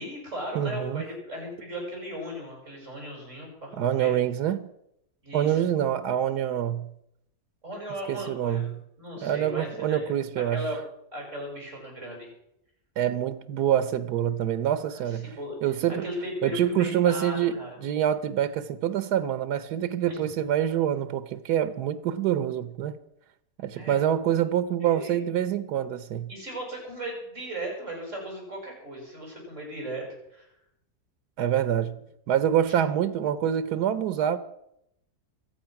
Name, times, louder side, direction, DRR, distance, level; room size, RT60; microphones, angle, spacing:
voice 1, 0.0-4.1 5.2-5.6 7.6-10.1 10.4-10.8 11.1-12.3 15.2-15.6 16.0-17.8 20.1-20.3 23.7-24.0 24.8-25.2 26.3-30.5, equal, 50° right, 6.8 m, -37 dB
voice 2, 0.5-1.1 3.7-4.7 5.3-6.9 8.1-8.8 9.2-10.6 13.0-16.1 16.4-23.0 23.6-26.3 31.4-32.0 32.3-34.4, right 10 dB, 90° right, 1.4 m, -26 dB
23.5 x 8.7 x 5.8 m
omnidirectional pair, 1.7 m